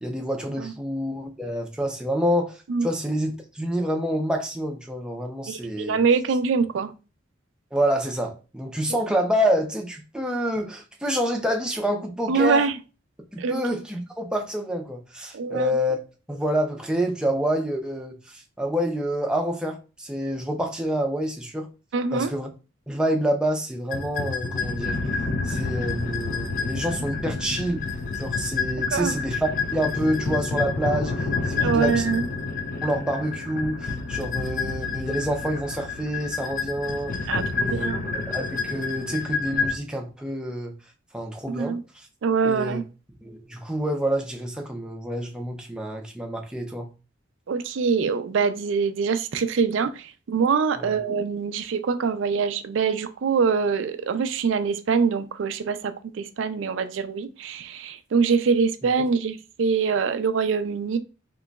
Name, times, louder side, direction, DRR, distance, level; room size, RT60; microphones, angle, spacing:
voice 1, 0.0-6.0 7.7-12.7 13.3-16.0 16.3-21.7 22.1-22.5 22.9-25.0 25.4-27.8 28.1-32.0 32.8-37.1 37.5-40.7 41.1-42.1 42.4-42.8 43.2-46.9 50.8-51.0, equal, 5° right, 0.5 m, -27 dB
voice 2, 5.5-6.9 12.3-12.7 13.4-13.6 15.3-15.7 21.9-22.3 28.9-29.2 31.6-32.2 37.3-38.0 41.5-41.8 42.2-42.8 47.5-61.0, right 5 dB, 70° right, 0.4 m, -24 dB
sound 1, 23.9-39.8, left 4 dB, 45° left, 0.5 m, -29 dB
3.8 x 3.0 x 2.3 m
head